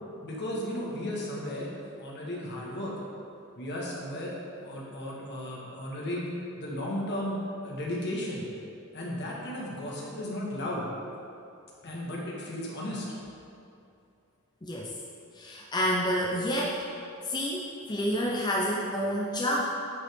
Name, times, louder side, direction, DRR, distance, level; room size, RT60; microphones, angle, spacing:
voice 1, 0.2-3.0 3.5-8.5 8.9-10.9 11.8-13.0, left 1 dB, 50° left, -4 dB, 1.6 m, -35 dB
voice 2, 14.6-14.9 15.3-16.8 17.2-19.6, equal, 20° left, -3 dB, 0.6 m, -29 dB
10.0 x 5.4 x 3.6 m, 2.6 s
head